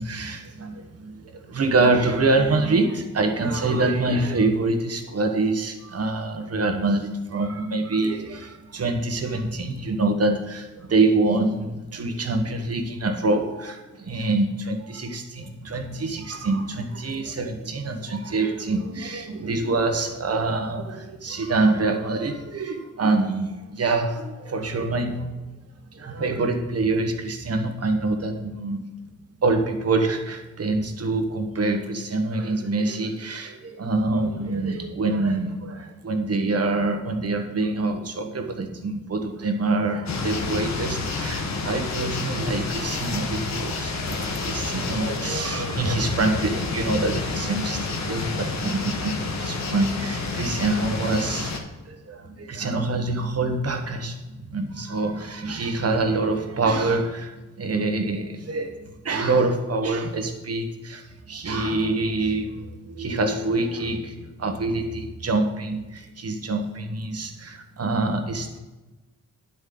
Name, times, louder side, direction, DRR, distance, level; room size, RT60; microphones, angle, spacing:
voice 1, 0.0-25.3 25.9-28.8 29.4-51.5 51.9-68.6, right 3 dB, 50° right, 5 dB, 1.3 m, -25 dB
sound 1, 40.1-51.6, left 3 dB, 55° left, 1.3 m, -29 dB
9.4 x 8.4 x 3.9 m, 1.1 s
cardioid pair, 85°, 32 cm